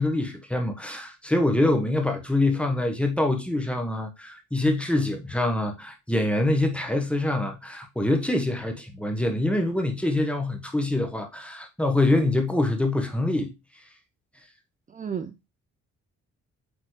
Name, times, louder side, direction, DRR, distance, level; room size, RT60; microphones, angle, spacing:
voice 1, 0.0-13.5, left 2 dB, 5° left, 1.4 m, -25 dB
voice 2, 14.9-15.5, right 7 dB, 25° right, 0.6 m, -33 dB
8.0 x 4.0 x 3.3 m
cardioid pair, 90°, 30 cm